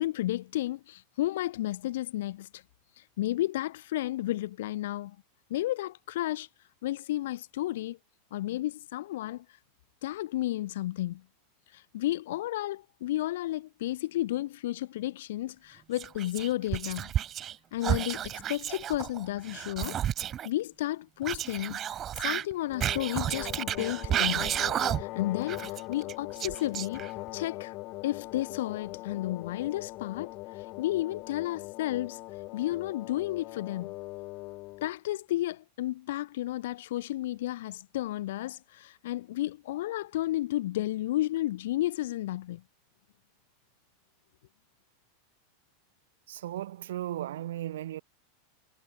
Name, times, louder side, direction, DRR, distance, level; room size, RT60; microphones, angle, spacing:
voice 1, 0.0-2.6 3.2-5.2 5.5-6.5 6.8-8.0 8.3-9.4 10.0-11.2 11.7-17.1 17.7-20.0 20.4-21.8 22.2-24.5 25.0-27.0 27.3-27.7 28.0-30.4 30.8-32.2 32.5-33.9 34.8-42.6, left 15 dB, 70° left, 1.5 m, -32 dB
Whispering, 16.0-17.6 17.8-20.5 21.2-25.2 25.5-27.3, right 10 dB, 25° right, 0.4 m, -32 dB
sound 1, 22.7-34.9, left 22 dB, 35° left, 4.3 m, -41 dB
voice 2, 46.3-48.0, right 13 dB, 90° right, 2.0 m, -36 dB
supercardioid pair, 165°, 0 cm